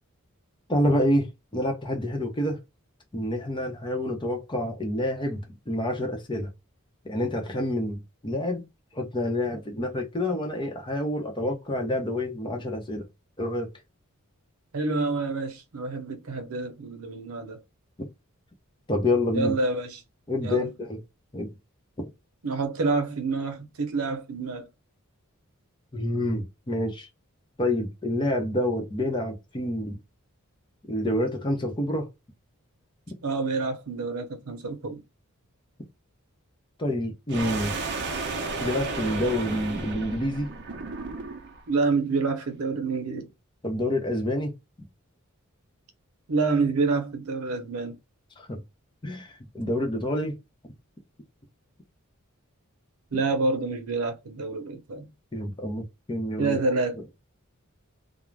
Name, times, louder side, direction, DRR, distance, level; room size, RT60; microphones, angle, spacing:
voice 1, 0.7-2.6 3.1-6.5 7.0-8.6 8.9-13.1 13.4-13.7 18.0-18.1 18.9-19.5 20.3-21.0 21.3-21.5 25.9-27.1 27.6-30.0 30.9-32.1 36.8-37.8 38.6-40.5 43.6-44.5 48.4-48.6 49.0-50.4 55.3-56.6, left 1 dB, 20° left, 0.7 m, -28 dB
voice 2, 14.7-17.6 19.3-20.0 20.4-20.7 22.4-24.7 33.2-35.0 41.7-43.3 46.3-48.0 53.1-55.1 56.4-57.0, right 3 dB, 90° right, 0.7 m, -27 dB
sound 1, 37.3-41.6, right 3 dB, 55° right, 0.6 m, -33 dB
2.4 x 2.1 x 3.1 m
head